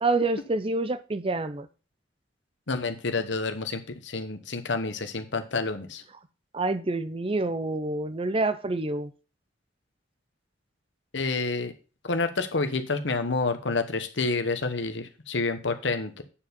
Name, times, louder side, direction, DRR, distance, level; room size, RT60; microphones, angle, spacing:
voice 1, 0.0-1.7 6.5-9.1, right 2 dB, 30° right, 0.6 m, -27 dB
voice 2, 2.7-6.0 11.1-11.7 12.0-16.2, left 3 dB, 75° left, 1.1 m, -29 dB
8.8 x 4.8 x 5.3 m
head